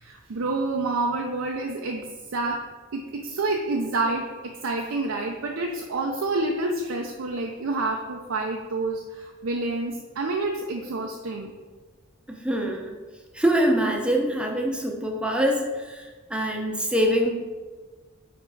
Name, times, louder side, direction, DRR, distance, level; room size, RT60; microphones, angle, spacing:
voice 1, 0.0-2.6 2.9-4.2 4.6-11.5, right 2 dB, 80° right, 1 dB, 0.5 m, -28 dB
voice 2, 12.3-13.0 13.3-17.3, equal, 5° right, 1 dB, 0.6 m, -24 dB
5.0 x 4.3 x 4.6 m, 1.4 s
head